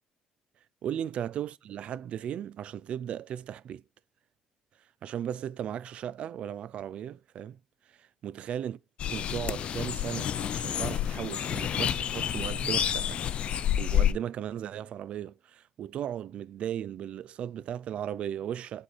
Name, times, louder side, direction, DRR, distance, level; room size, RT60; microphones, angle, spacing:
voice 1, 0.8-3.8 5.0-7.6 8.0-8.8 9.1-13.2 13.8-18.8, right 10 dB, 65° right, 0.5 m, -36 dB
sound 1, 9.0-14.1, left 10 dB, 60° left, 0.5 m, -29 dB
8.3 x 4.4 x 5.4 m
cardioid pair, 80°, 2 cm